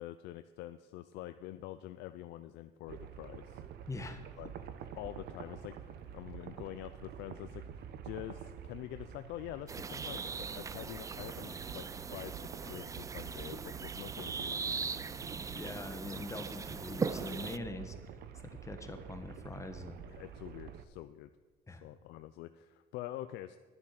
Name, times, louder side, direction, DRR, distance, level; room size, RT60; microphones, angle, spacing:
voice 1, 0.0-3.6 4.4-4.5 5.0-11.9 12.1-15.2 20.0-21.3 21.7-23.6, left 14 dB, 90° left, 11 dB, 0.5 m, -46 dB
sound 1, 2.9-20.8, right 8 dB, 70° right, 0.9 m, -48 dB
voice 2, 3.9-4.2 15.5-17.9 18.3-20.0 21.7-21.8, left 2 dB, 15° left, 7 dB, 1.4 m, -43 dB
sound 2, 9.7-17.6, right 5 dB, 20° right, 0.3 m, -40 dB
11.0 x 9.8 x 5.9 m, 1.4 s
cardioid pair, 110°, 17 cm